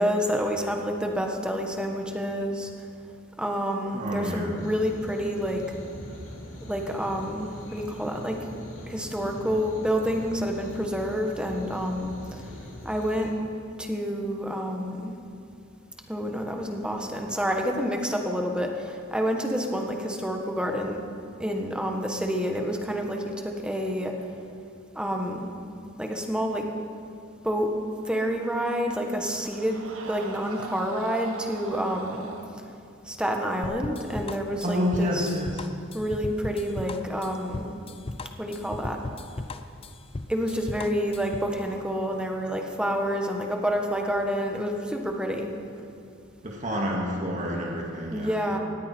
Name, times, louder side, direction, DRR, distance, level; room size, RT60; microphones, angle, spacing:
voice 1, 0.0-2.7 3.4-5.6 6.7-8.4 8.9-12.4 12.8-13.3 13.8-15.1 16.1-21.0 21.4-24.1 24.9-25.5 26.0-26.7 27.4-27.7 28.0-32.3 33.0-35.4 35.9-37.7 38.4-39.0 40.3-45.5 48.1-48.6, equal, 5° right, 2 dB, 1.4 m, -28 dB
voice 2, 3.9-4.6 34.6-35.7 46.4-48.4, equal, 40° right, -1 dB, 2.0 m, -28 dB
sound 1, 4.6-13.3, equal, 70° left, 3.5 m, -42 dB
Screaming, 28.0-32.5, right 3 dB, 80° right, 1.6 m, -42 dB
sound 2, 33.6-41.5, left 2 dB, 30° left, 0.6 m, -37 dB
19.0 x 14.5 x 4.5 m, 2.5 s
head